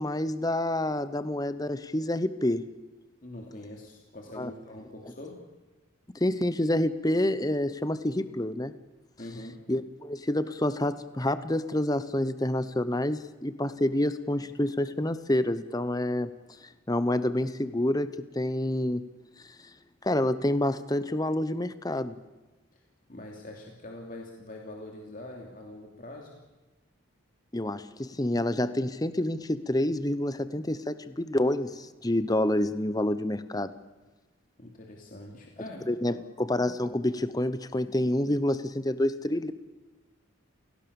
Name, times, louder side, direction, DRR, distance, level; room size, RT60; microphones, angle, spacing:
voice 1, 0.0-2.7 4.3-4.5 6.1-8.7 9.7-16.3 16.9-19.0 19.4-19.5 20.0-22.2 27.5-33.7 35.9-39.5, left 1 dB, 20° left, 13 dB, 0.9 m, -28 dB
voice 2, 3.2-5.4 9.2-9.6 23.1-26.4 34.6-35.8 36.1-36.2, left 1 dB, 40° left, 0 dB, 2.9 m, -43 dB
28.5 x 18.0 x 7.0 m, 1.2 s
head